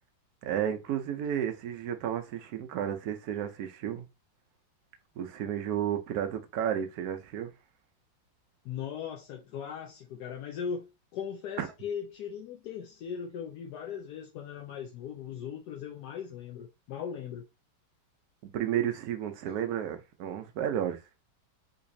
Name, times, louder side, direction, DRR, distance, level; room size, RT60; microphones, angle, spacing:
voice 1, 0.4-4.0 5.2-7.5 11.6-11.7 18.4-21.0, right 9 dB, 75° right, 0.8 m, -32 dB
voice 2, 8.6-17.4, left 7 dB, 70° left, 0.9 m, -39 dB
3.9 x 3.0 x 2.6 m
omnidirectional pair, 2.2 m